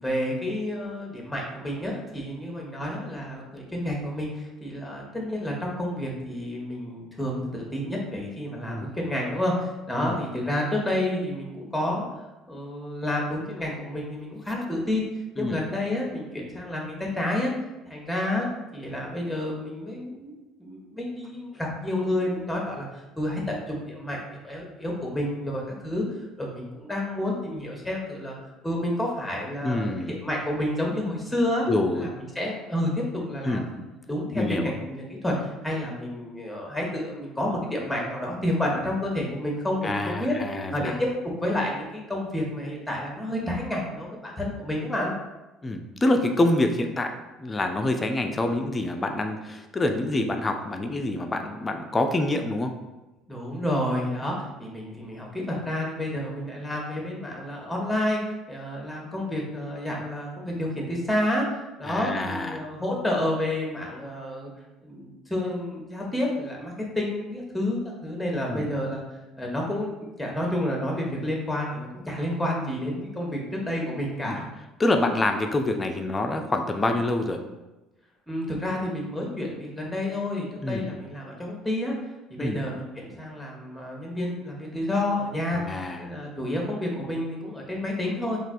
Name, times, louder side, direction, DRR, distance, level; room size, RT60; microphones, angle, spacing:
voice 1, 0.0-12.0 12.5-15.0 15.4-17.5 17.9-20.3 20.6-26.0 26.4-28.4 28.6-31.6 31.9-32.1 32.3-40.3 40.7-41.1 41.4-45.1 53.3-54.3 54.6-58.2 58.5-61.4 61.8-64.5 64.8-69.0 69.4-74.5 78.3-81.9 82.3-85.6 86.0-88.4, left 1 dB, 5° left, -1 dB, 0.8 m, -30 dB
voice 2, 29.6-30.1 31.7-32.1 33.4-33.7 34.3-34.7 39.8-41.0 45.6-47.1 47.4-52.7 61.8-62.7 68.5-68.8 74.2-74.4 74.8-77.4 80.6-80.8 82.4-82.6 85.5-86.0, left 2 dB, 25° left, 5 dB, 0.4 m, -26 dB
3.2 x 2.3 x 2.6 m, 1.1 s
hypercardioid pair, 60°, 0 cm